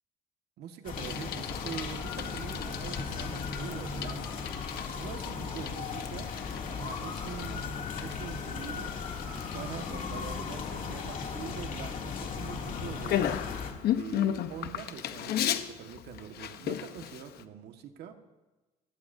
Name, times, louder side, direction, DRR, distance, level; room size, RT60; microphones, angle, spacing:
voice 1, 0.6-4.5 5.0-6.3 6.7-9.0 9.5-13.4 13.8-18.2, right 8 dB, 75° right, 5 dB, 1.7 m, -44 dB
sound 1, 0.8-13.7, left 5 dB, 55° left, 2.8 m, -37 dB
Bicycle, 0.9-17.4, left 11 dB, 70° left, 1.0 m, -36 dB
30.0 x 17.0 x 2.8 m, 1.2 s
cardioid pair, 110°, 17 cm